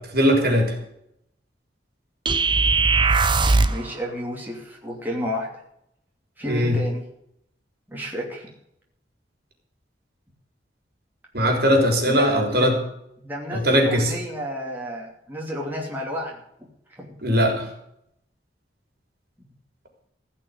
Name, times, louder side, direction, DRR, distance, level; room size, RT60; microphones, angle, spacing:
voice 1, 0.1-0.7 6.4-6.8 11.3-12.7 13.5-14.1 17.2-17.7, equal, 60° right, 3 dB, 3.7 m, -19 dB
sound 1, 2.3-3.9, right 3 dB, 25° right, 0.8 m, -19 dB
voice 2, 3.6-5.5 6.4-7.0 7.9-8.5 12.0-12.7 13.2-16.4 16.9-17.1, equal, 10° right, -2 dB, 2.9 m, -31 dB
16.0 x 6.1 x 9.8 m, 0.76 s
head